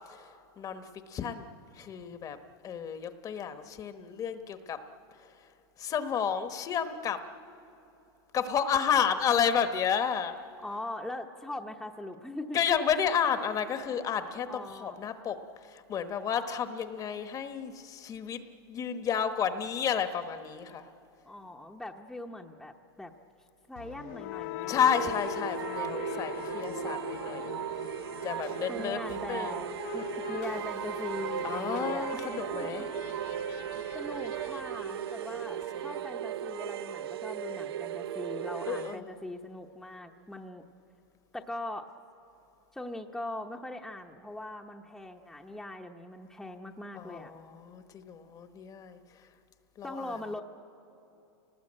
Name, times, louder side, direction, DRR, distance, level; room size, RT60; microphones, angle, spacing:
voice 1, 1.1-1.5 1.8-2.4 2.6-4.8 5.8-7.2 8.3-10.4 12.5-18.4 18.7-20.8 24.7-27.5 28.2-29.0 29.3-29.7 31.4-32.8 34.9-35.0 38.7-39.1 46.9-49.0 49.8-49.9, left 7 dB, 25° left, 9 dB, 1.1 m, -31 dB
voice 2, 10.6-12.6 14.4-15.0 21.3-23.1 23.7-25.2 28.4-32.9 33.9-40.6 41.3-41.9 42.7-47.3 49.8-50.4, left 1 dB, 5° left, 2 dB, 0.9 m, -41 dB
sound 1, 23.8-35.7, left 14 dB, 50° left, 0.6 m, -41 dB
sound 2, 24.8-39.0, right 10 dB, 85° right, 0.6 m, -36 dB
29.0 x 19.0 x 8.8 m, 2.8 s
supercardioid pair, 135°, 13 cm